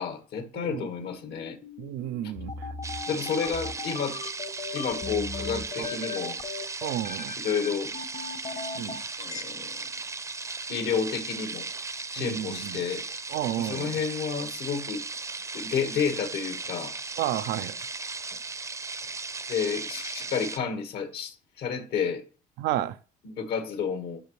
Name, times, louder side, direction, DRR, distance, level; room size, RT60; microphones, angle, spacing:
voice 1, 0.0-1.6 3.1-4.2 4.7-6.4 7.4-7.9 9.2-9.7 10.7-11.6 12.1-13.0 13.6-15.0 15.5-17.0 19.5-22.2 23.2-24.2, left 6 dB, 70° left, 1.8 m, -30 dB
voice 2, 0.5-0.9 1.8-2.7 5.8-5.9 6.8-7.3 8.7-9.0 12.2-12.8 13.3-13.9 17.2-17.8 22.6-23.0, right 12 dB, 85° right, 0.5 m, -31 dB
sound 1, 1.0-9.4, left 4 dB, 45° left, 1.1 m, -37 dB
sound 2, 2.8-20.6, right 4 dB, 20° right, 0.6 m, -37 dB
12.0 x 5.0 x 3.2 m
cardioid pair, 110°, 17 cm